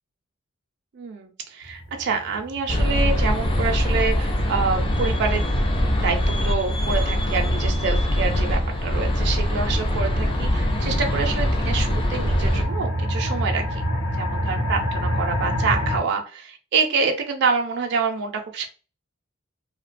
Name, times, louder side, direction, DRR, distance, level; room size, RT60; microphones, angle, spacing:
voice 1, 0.9-5.5 6.0-13.8 14.1-18.7, right 5 dB, 55° right, 4 dB, 0.4 m, -27 dB
sound 1, 1.6-16.0, equal, 70° left, 0.6 m, -29 dB
sound 2, 2.7-12.7, equal, 25° left, 0.3 m, -23 dB
2.5 x 2.1 x 2.5 m, 0.34 s
head